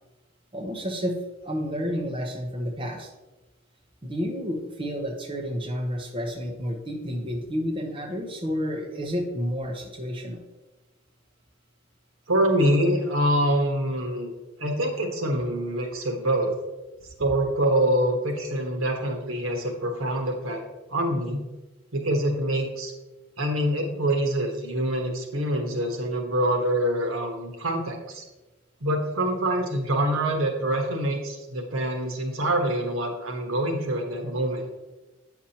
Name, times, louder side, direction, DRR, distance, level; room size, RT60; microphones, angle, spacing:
voice 1, 0.5-1.2 1.4-3.1 4.0-10.4, equal, 25° right, 1 dB, 0.8 m, -30 dB
voice 2, 12.3-14.3 14.6-16.5 17.2-20.6 20.9-21.5 21.9-22.9 23.4-28.2 28.8-34.6, right 1 dB, 85° right, 3 dB, 1.2 m, -25 dB
8.9 x 6.0 x 2.9 m, 1.1 s
head